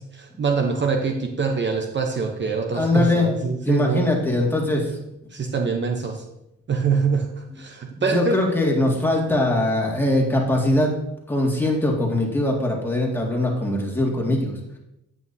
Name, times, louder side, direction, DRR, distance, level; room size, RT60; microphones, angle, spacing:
voice 1, 0.0-4.1 5.3-6.2 6.7-8.4, right 5 dB, 40° right, 4 dB, 0.8 m, -24 dB
voice 2, 2.7-3.4 3.7-4.9 8.0-10.9 11.3-14.8, left 1 dB, 5° left, -1 dB, 2.1 m, -21 dB
9.1 x 8.2 x 2.8 m, 0.86 s
cardioid pair, 90°, 30 cm